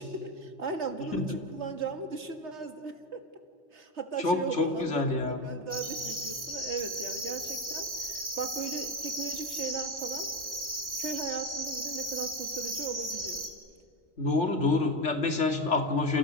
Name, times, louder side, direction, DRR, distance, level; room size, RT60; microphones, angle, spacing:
voice 1, 0.0-3.2 3.7-10.3 11.0-13.5, right 5 dB, 70° right, 6 dB, 2.1 m, -38 dB
voice 2, 4.2-5.4 14.2-16.2, left 3 dB, 75° left, 4 dB, 2.6 m, -27 dB
sound 1, 5.7-13.5, right 1 dB, 40° right, 3.1 m, -35 dB
29.0 x 29.0 x 6.4 m, 2.2 s
omnidirectional pair, 1.2 m